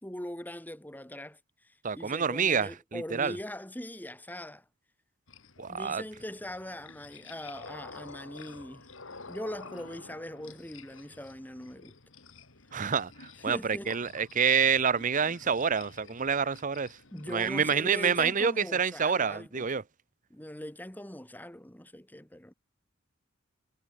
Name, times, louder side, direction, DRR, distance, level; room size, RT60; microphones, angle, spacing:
voice 1, 0.0-4.6 5.7-8.9 9.3-12.0 13.4-14.1 17.1-19.7 20.3-22.5, left 1 dB, 10° left, 2.6 m, -41 dB
voice 2, 1.8-3.4 5.6-6.0 12.7-17.0 17.3-19.8, right 6 dB, 40° right, 0.7 m, -27 dB
sound 1, 5.3-18.4, left 4 dB, 80° left, 3.2 m, -51 dB
head